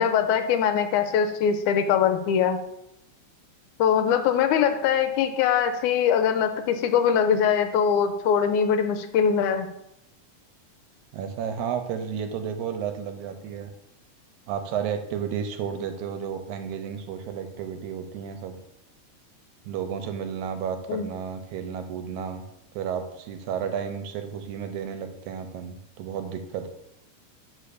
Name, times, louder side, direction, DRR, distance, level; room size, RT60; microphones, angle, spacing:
voice 1, 0.0-2.6 3.8-9.7 20.9-21.1, left 7 dB, 80° left, 8 dB, 2.0 m, -22 dB
voice 2, 11.1-13.7 14.5-18.6 19.6-22.4 22.8-26.7, right 7 dB, 80° right, 7 dB, 2.0 m, -32 dB
13.0 x 4.7 x 2.5 m, 0.80 s
omnidirectional pair, 3.6 m